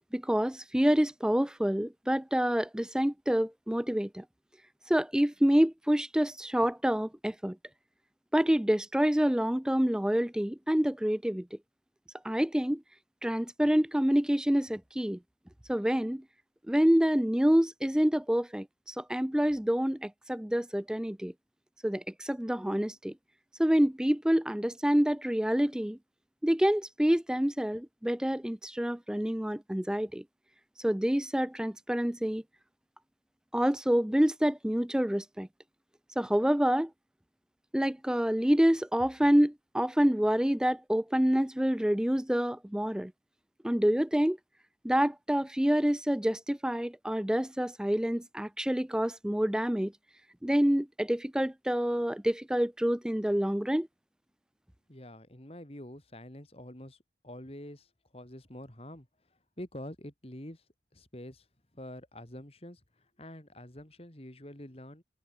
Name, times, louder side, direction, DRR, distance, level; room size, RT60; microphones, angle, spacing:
voice 1, 0.1-4.2 4.9-7.6 8.3-11.5 12.2-12.8 13.2-15.2 15.7-16.2 16.7-21.3 21.8-23.1 23.6-26.0 26.4-30.2 30.8-32.4 33.5-35.5 36.2-36.9 37.7-43.1 43.6-44.4 44.8-49.9 50.4-53.9, equal, 5° right, 0.4 m, -27 dB
voice 2, 54.9-57.0 57.2-60.6 60.9-61.5 61.7-65.0, left 1 dB, 35° left, 2.8 m, -46 dB
head